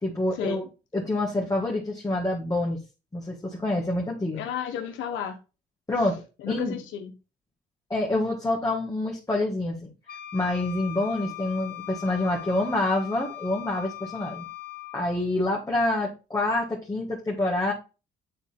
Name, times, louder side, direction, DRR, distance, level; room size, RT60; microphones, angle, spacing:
voice 1, 0.0-0.6 0.9-2.8 3.1-4.4 5.9-6.1 6.5-6.8 7.9-9.9 10.3-14.5 14.9-17.7, left 2 dB, 15° left, 1.8 m, -27 dB
voice 2, 4.3-5.4 6.4-7.1, left 8 dB, 80° left, 1.0 m, -33 dB
Wind instrument woodwind instrument, 10.1-15.2, left 16 dB, 50° left, 1.0 m, -40 dB
9.3 x 3.8 x 3.5 m
cardioid pair, 90°, 20 cm